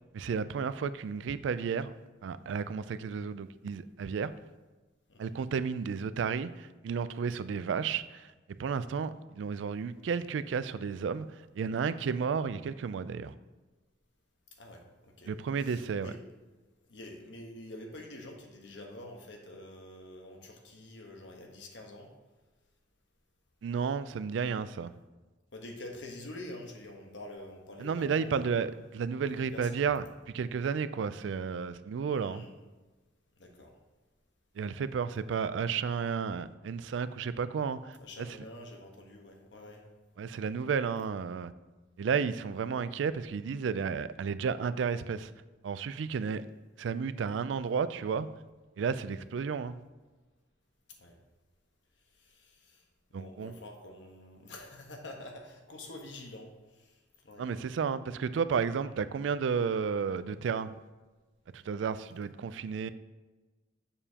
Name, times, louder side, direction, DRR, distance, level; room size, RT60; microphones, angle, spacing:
voice 1, 0.1-1.9 2.2-4.3 5.2-8.3 8.6-13.3 15.3-16.1 23.6-24.9 27.8-32.4 34.6-38.3 40.2-41.5 42.0-45.3 45.6-46.4 46.8-48.3 48.8-49.8 53.1-53.5 57.4-60.8 61.5-62.9, right 6 dB, 70° right, 0.3 m, -32 dB
voice 2, 14.6-15.3 15.6-16.2 16.9-22.1 25.5-28.5 29.3-29.8 32.1-32.6 33.4-33.7 38.0-39.8 51.0-51.1 52.1-52.8 53.1-57.4 58.9-59.0, left 1 dB, 70° left, 1.2 m, -47 dB
7.0 x 6.8 x 2.9 m
head